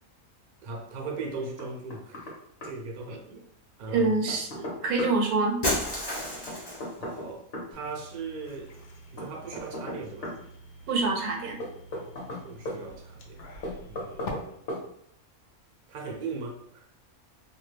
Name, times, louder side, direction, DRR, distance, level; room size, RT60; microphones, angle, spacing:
voice 1, 0.6-2.3 2.6-3.3 3.8-4.2 7.0-7.4 7.7-8.8 9.1-10.4 12.4-13.4 13.9-14.6 15.9-16.9, right 3 dB, 65° right, 0 dB, 0.4 m, -38 dB
Knock, 1.6-2.4 2.6-2.7 3.9-5.2 6.5-7.7 9.2-10.4 11.6-12.8 13.6-14.4 14.7-14.8, left 1 dB, 50° left, 0.8 m, -36 dB
voice 2, 3.9-5.6 10.9-11.6, right 3 dB, 85° right, 2 dB, 1.1 m, -26 dB
Shatter, 5.6-7.0, left 1 dB, 30° left, 0.5 m, -30 dB
sound 1, 7.7-14.3, left 1 dB, 80° left, 0.5 m, -47 dB
2.6 x 2.2 x 3.2 m, 0.68 s
omnidirectional pair, 1.6 m